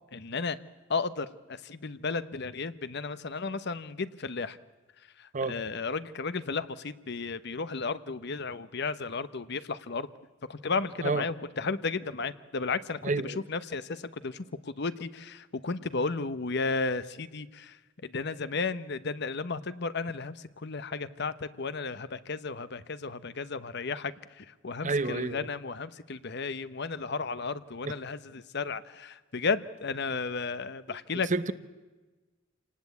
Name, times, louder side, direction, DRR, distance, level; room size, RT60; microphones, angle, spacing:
voice 1, 0.1-0.6 0.9-4.6 5.2-10.1 10.5-17.8 18.0-31.3, left 4 dB, 60° left, 14 dB, 1.0 m, -34 dB
voice 2, 13.0-13.4 24.8-25.5 27.8-27.9 31.3-31.5, right 3 dB, 40° right, 14 dB, 0.9 m, -29 dB
27.5 x 19.0 x 8.4 m, 1.2 s
head